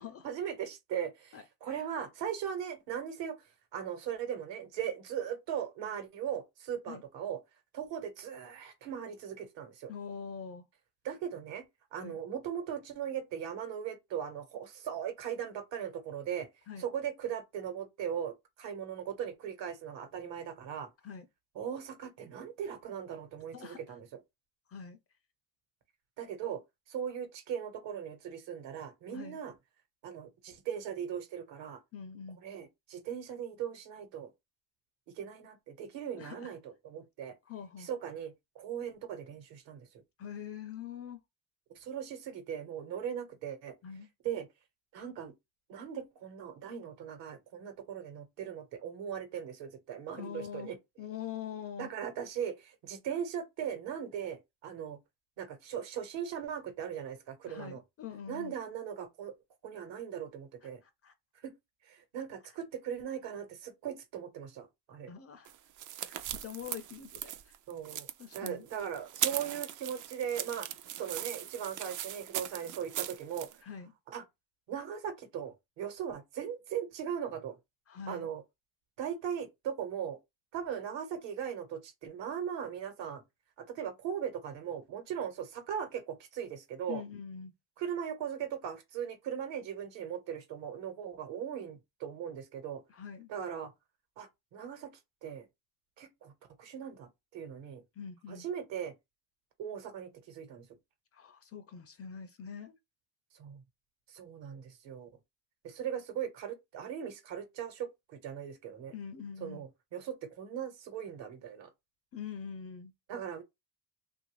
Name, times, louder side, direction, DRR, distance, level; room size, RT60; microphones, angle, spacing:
voice 1, 0.2-3.4 3.7-7.4 7.7-9.9 11.0-11.6 11.9-16.5 16.8-20.9 21.5-24.1 26.2-26.6 26.9-29.5 30.0-31.8 32.4-34.3 35.1-37.3 37.8-39.9 41.7-43.7 44.2-44.5 44.9-45.3 45.7-50.8 51.8-55.0 55.4-57.8 58.3-59.3 59.6-60.8 61.4-61.5 61.8-65.1 67.7-68.1 68.3-70.7 70.9-73.5 74.1-74.2 74.7-77.6 78.1-78.4 79.0-80.2 80.5-83.2 83.6-87.0 87.8-92.8 93.3-93.7 94.2-94.9 95.2-95.5 96.0-96.3 96.6-97.8 98.3-98.9 99.6-100.7 103.3-103.6 104.1-105.1 105.6-108.9 109.4-111.7 113.1-113.4, right 8 dB, 65° right, 1.2 m, -39 dB
voice 2, 1.3-1.9 6.9-7.0 9.9-10.7 12.0-12.1 16.7-16.9 21.0-21.3 23.5-23.8 24.7-25.0 29.1-29.4 31.9-32.4 36.2-36.5 37.5-37.9 40.2-41.2 43.8-44.1 50.1-51.9 57.4-58.5 60.6-61.1 65.1-65.5 66.4-67.6 68.2-68.6 73.6-73.9 77.9-78.3 86.9-87.5 92.9-93.3 97.9-98.4 101.1-102.8 108.9-109.6 112.1-112.9, left 7 dB, 35° left, 0.4 m, -44 dB
sound 1, 65.5-73.5, right 11 dB, 45° right, 0.4 m, -39 dB
3.0 x 2.6 x 3.1 m
cardioid pair, 120°, 47 cm